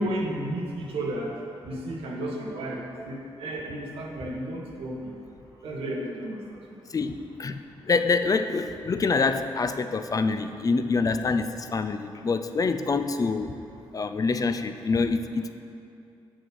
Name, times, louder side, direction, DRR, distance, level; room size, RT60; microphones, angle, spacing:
voice 1, 0.0-1.3 1.6-5.1 5.6-6.6, right 1 dB, 80° right, -1 dB, 1.4 m, -32 dB
voice 2, 6.9-7.6 7.8-13.5 13.9-15.5, left 4 dB, 40° left, 9 dB, 0.5 m, -26 dB
7.5 x 6.4 x 6.3 m, 2.5 s
cardioid pair, 80°, 10 cm